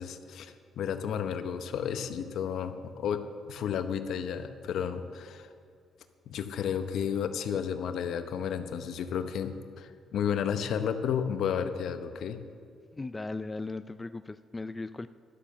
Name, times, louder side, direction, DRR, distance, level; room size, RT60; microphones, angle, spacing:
voice 1, 0.0-5.5 6.3-12.4, left 8 dB, 70° left, 9 dB, 0.8 m, -32 dB
voice 2, 12.9-15.1, left 3 dB, 20° left, 12 dB, 0.3 m, -37 dB
11.5 x 6.9 x 6.9 m, 2.3 s
cardioid pair, 85°, 0 cm